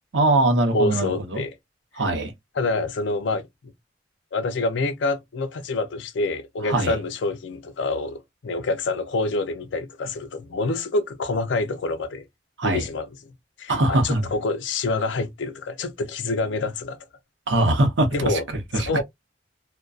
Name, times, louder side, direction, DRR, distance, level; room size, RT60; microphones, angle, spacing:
voice 1, 0.1-1.4 2.0-2.3 6.6-7.0 12.6-12.9 13.7-14.2 17.5-19.0, right 2 dB, 75° right, 0.7 m, -22 dB
voice 2, 0.7-1.5 2.6-3.5 4.3-12.3 12.6-13.1 13.6-17.0 18.1-18.4 18.9-19.0, left 3 dB, 75° left, 0.5 m, -26 dB
2.5 x 2.2 x 2.2 m
head